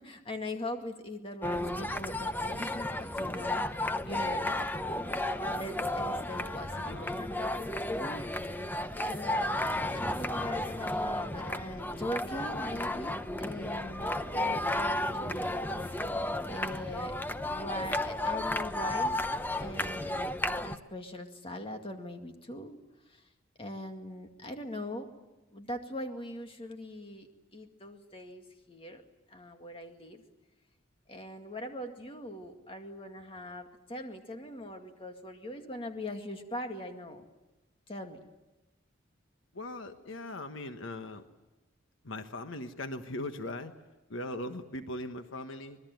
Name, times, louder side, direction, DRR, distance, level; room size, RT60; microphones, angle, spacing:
voice 1, 0.0-3.8 4.0-4.7 5.4-8.2 9.0-15.6 16.5-17.1 17.5-19.1 19.5-20.4 20.6-22.8 23.1-23.2 23.6-25.1 25.5-30.2 31.1-37.3 37.9-38.2, left 1 dB, 30° left, 5 dB, 2.1 m, -41 dB
sound 1, 1.4-20.8, left 1 dB, 10° left, 0.8 m, -33 dB
voice 2, 1.6-2.0 6.7-7.1 39.5-41.2 42.0-43.7 44.1-45.8, left 1 dB, 70° left, 7 dB, 1.3 m, -40 dB
26.0 x 20.5 x 9.2 m, 1.1 s
head